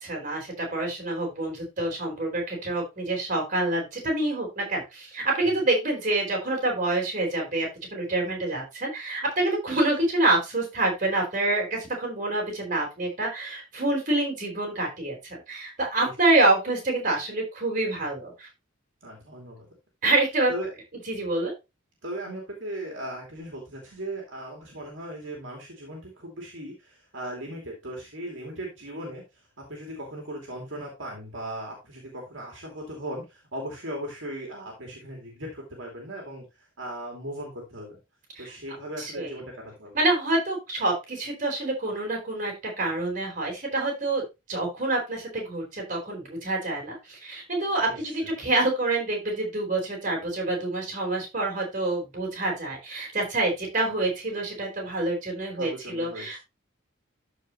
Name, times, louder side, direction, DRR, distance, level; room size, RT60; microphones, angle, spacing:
voice 1, 0.0-18.5 20.0-20.5 21.1-21.5 38.4-38.5 39.0-39.3 39.9-44.2 44.5-56.4, right 2 dB, 40° right, 1 dB, 4.1 m, -27 dB
voice 2, 19.0-19.7 20.5-20.7 22.0-38.0 38.4-39.9 47.9-48.0 55.6-56.4, right 1 dB, 65° right, 0 dB, 2.7 m, -38 dB
13.0 x 5.0 x 3.0 m, 0.24 s
head